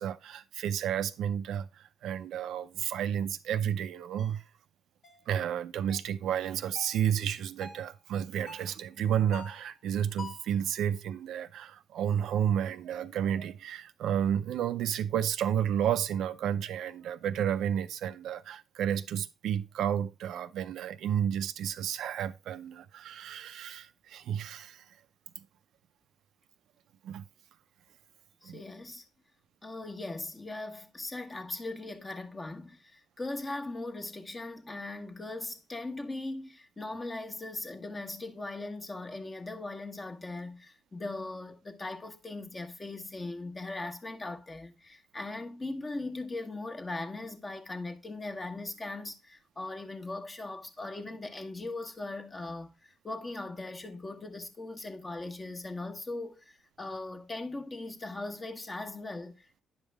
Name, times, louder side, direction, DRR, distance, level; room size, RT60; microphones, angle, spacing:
voice 1, 0.0-4.4 5.3-24.8 25.4-25.5 27.0-27.2 28.4-28.6, right 9 dB, 80° right, 0.5 m, -31 dB
sound 1, 4.2-4.4 5.0-5.3 5.9-6.2 6.8-7.0 7.6-7.9 8.5-8.8 9.3-9.7 10.2-10.5, left 4 dB, 60° left, 1.6 m, -46 dB
voice 2, 28.4-29.0 29.6-59.6, left 2 dB, 25° left, 1.2 m, -39 dB
9.5 x 5.4 x 3.4 m
cardioid pair, 90°, 0 cm